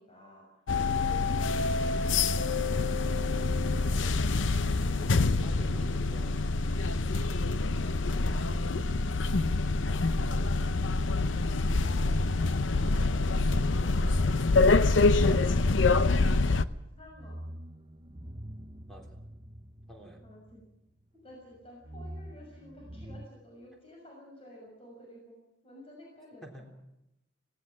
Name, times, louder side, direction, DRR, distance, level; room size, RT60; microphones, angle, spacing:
voice 1, 0.0-3.5 7.7-9.0 11.5-14.3 16.9-17.4 20.2-20.6 21.2-25.4 25.6-26.4, left 1 dB, 30° left, -2 dB, 6.5 m, -52 dB
sound 1, 0.7-16.6, left 3 dB, 85° left, 0.7 m, -26 dB
voice 2, 5.0-6.6 9.8-10.4 15.2-15.7 18.9-19.2 19.9-20.2 26.4-26.7, equal, ahead, 1 dB, 3.6 m, -48 dB
sound 2, 8.3-11.2 12.4-16.3 17.0-21.0 21.3-23.3, equal, 30° right, 0.8 m, -46 dB
18.5 x 17.5 x 8.7 m, 0.88 s
head